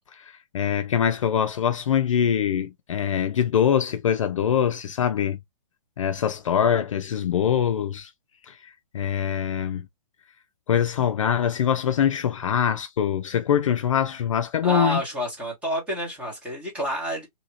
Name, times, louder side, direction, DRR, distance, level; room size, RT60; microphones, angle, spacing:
voice 1, 0.1-5.4 6.0-8.1 8.4-9.9 10.7-15.0, left 9 dB, 50° left, 0.4 m, -23 dB
voice 2, 14.6-17.3, right 1 dB, 5° right, 1.0 m, -29 dB
2.8 x 2.8 x 2.7 m
hypercardioid pair, 165°, 21 cm